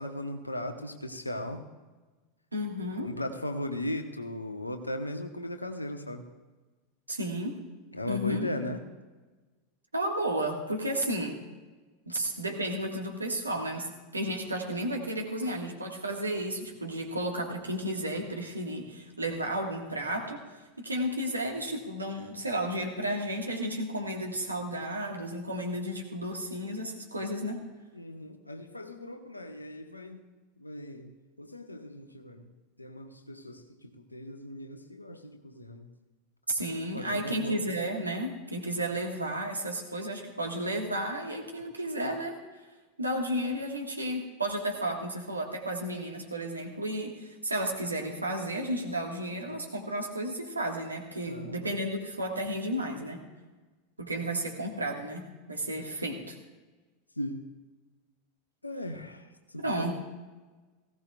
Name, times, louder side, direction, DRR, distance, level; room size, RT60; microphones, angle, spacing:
voice 1, 0.0-1.6 3.0-6.2 7.9-8.8 12.1-12.2 27.9-30.2 30.6-32.5 32.8-35.9 36.9-37.6 51.3-51.6 57.2-57.4 58.6-59.3 59.8-59.9, left 1 dB, 85° left, 7 dB, 1.0 m, -37 dB
voice 2, 2.5-3.1 7.1-7.6 8.1-8.5 9.9-11.4 12.1-20.4 20.8-27.6 36.5-42.4 43.0-53.2 54.0-56.4 59.6-59.9, right 1 dB, 80° right, 2 dB, 1.6 m, -33 dB
18.5 x 16.0 x 2.4 m, 1.3 s
figure-of-eight pair, 85°, 0 cm